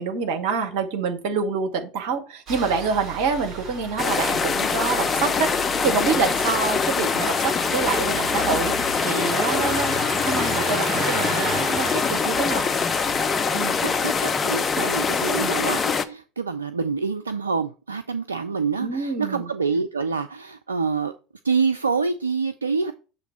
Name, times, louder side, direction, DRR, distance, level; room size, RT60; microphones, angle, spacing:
voice 1, 0.0-8.7 9.0-10.0 10.3-12.7 13.5-13.8 15.4-15.5 18.8-19.5, right 5 dB, 60° right, 1.1 m, -26 dB
Engine starting, 2.5-15.9, right 3 dB, 40° right, 2.7 m, -35 dB
sound 1, 4.0-16.0, left 5 dB, 25° left, 0.5 m, -24 dB
voice 2, 13.8-21.1 21.4-22.9, right 5 dB, 85° right, 0.3 m, -26 dB
7.0 x 3.0 x 5.6 m
figure-of-eight pair, 70°, 0 cm